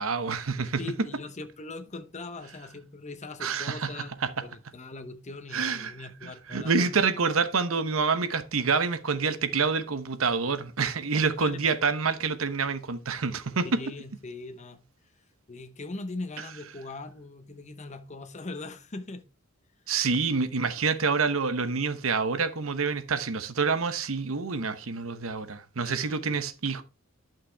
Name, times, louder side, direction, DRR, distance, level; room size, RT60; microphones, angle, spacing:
voice 1, 0.0-0.8 3.4-3.9 4.2-4.3 5.5-13.8 19.9-26.8, right 5 dB, 85° right, 0.9 m, -27 dB
voice 2, 0.8-7.0 11.2-11.6 13.6-14.8 15.5-19.2 25.8-26.4, left 3 dB, 35° left, 0.9 m, -41 dB
11.5 x 5.9 x 3.4 m
head